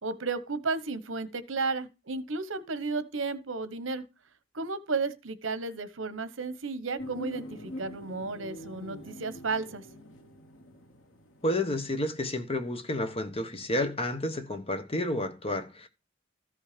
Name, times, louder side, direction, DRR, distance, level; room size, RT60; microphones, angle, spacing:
voice 1, 0.0-4.0 4.5-9.8, right 4 dB, 80° right, 1.1 m, -33 dB
sound 1, 7.0-12.3 12.6-12.7, equal, 80° left, 1.5 m, -44 dB
voice 2, 11.4-15.9, left 1 dB, 30° left, 1.2 m, -30 dB
14.0 x 5.6 x 5.1 m
head